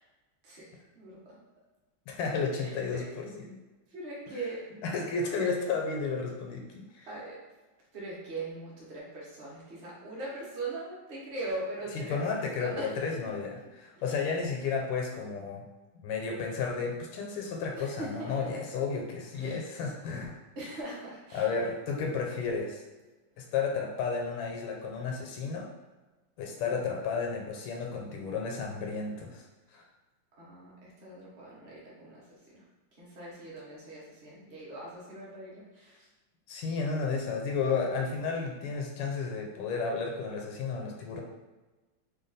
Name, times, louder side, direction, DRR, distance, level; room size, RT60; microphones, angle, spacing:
voice 1, 0.4-1.4 2.6-3.1 3.9-4.6 7.1-7.4 7.9-12.2 12.6-12.9 14.1-14.2 17.8-18.3 19.3-19.6 20.6-21.5 30.4-32.6 32.9-36.1, right 2 dB, 50° right, -5 dB, 0.7 m, -41 dB
voice 2, 2.1-3.6 4.8-7.1 11.9-15.6 16.0-20.3 21.3-22.8 23.4-25.7 26.4-29.4 29.7-29.8 36.5-41.2, left 5 dB, 85° left, 1 dB, 1.5 m, -32 dB
3.5 x 2.2 x 3.9 m, 1.2 s
omnidirectional pair, 2.3 m